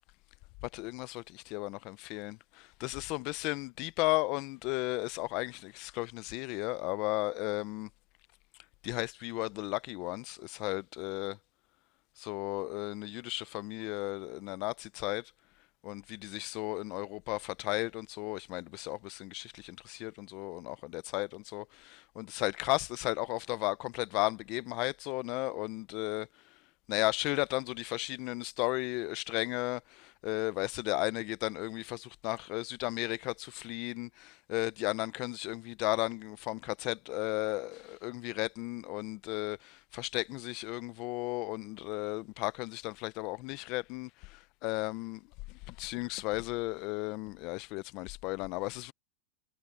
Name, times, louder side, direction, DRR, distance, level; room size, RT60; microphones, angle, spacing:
voice 1, 0.7-7.9 8.8-11.4 12.2-15.3 15.8-26.3 26.9-45.2 45.5-48.9, left 23 dB, 40° left, 0.6 m, -35 dB
supercardioid pair, 165°, 0 cm